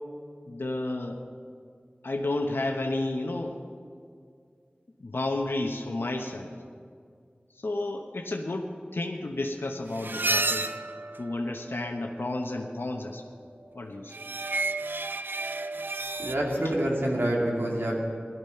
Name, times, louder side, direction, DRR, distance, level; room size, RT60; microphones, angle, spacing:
voice 1, 0.5-1.2 2.0-3.6 5.0-6.5 7.6-10.7 11.2-13.2 13.7-14.2 14.8-14.9, left 2 dB, 80° left, 3 dB, 1.0 m, -31 dB
sound 1, 9.9-12.0 14.1-16.3, right 2 dB, 60° right, 0.5 m, -31 dB
voice 2, 16.1-18.0, right 1 dB, 90° right, -2 dB, 2.7 m, -27 dB
17.0 x 12.5 x 5.7 m, 2.2 s
wide cardioid pair, 45°, 4 cm